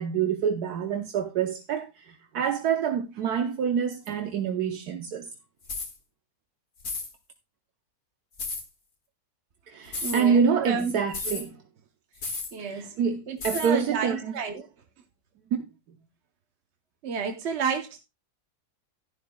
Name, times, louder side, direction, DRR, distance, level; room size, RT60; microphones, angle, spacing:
voice 1, 0.0-5.3 9.7-11.6 12.6-14.4 15.5-15.7, right 7 dB, 75° right, 1.4 m, -27 dB
sound 1, 5.6-5.9 6.8-7.1 8.4-8.6 9.9-10.2 11.1-11.4 12.2-12.5 13.4-13.7, left 3 dB, 70° left, 2.5 m, -33 dB
voice 2, 10.0-11.0 12.5-14.7 17.0-18.0, right 6 dB, 50° right, 0.9 m, -31 dB
11.5 x 11.5 x 2.2 m
omnidirectional pair, 1.7 m